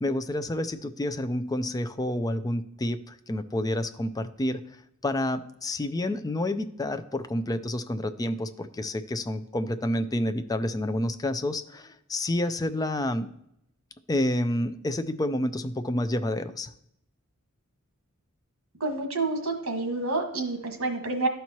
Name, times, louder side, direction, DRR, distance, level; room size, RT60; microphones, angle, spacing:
voice 1, 0.0-4.6 5.0-13.3 14.1-16.7, left 1 dB, 15° left, 9 dB, 0.4 m, -29 dB
voice 2, 18.8-21.3, right 3 dB, 80° right, 5 dB, 1.4 m, -28 dB
12.5 x 4.5 x 2.9 m, 0.78 s
head